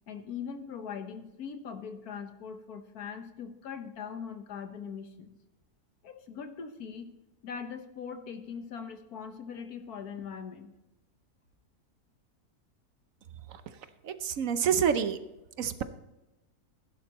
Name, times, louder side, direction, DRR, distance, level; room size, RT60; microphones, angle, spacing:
voice 1, 0.1-5.3 6.0-7.1 7.4-10.7, left 6 dB, 75° left, 8 dB, 1.6 m, -41 dB
voice 2, 14.0-15.2 15.6-15.8, right 8 dB, 65° right, 11 dB, 1.1 m, -27 dB
16.0 x 11.0 x 3.0 m, 1.0 s
omnidirectional pair, 1.6 m